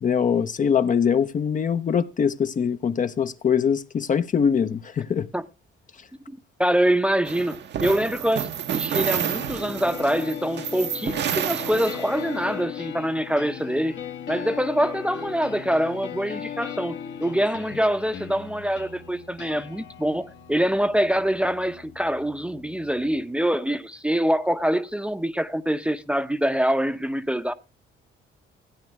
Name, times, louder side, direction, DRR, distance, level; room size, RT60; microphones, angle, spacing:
voice 1, 0.0-5.3, left 7 dB, 40° left, 0.6 m, -23 dB
voice 2, 6.3-13.9 14.3-16.9 17.2-27.5, equal, 5° right, 0.6 m, -25 dB
sound 1, 7.3-12.4, right 9 dB, 65° right, 0.8 m, -29 dB
sound 2, 9.3-23.3, left 8 dB, 65° left, 1.5 m, -38 dB
15.5 x 9.1 x 3.1 m
cardioid pair, 90°, 20 cm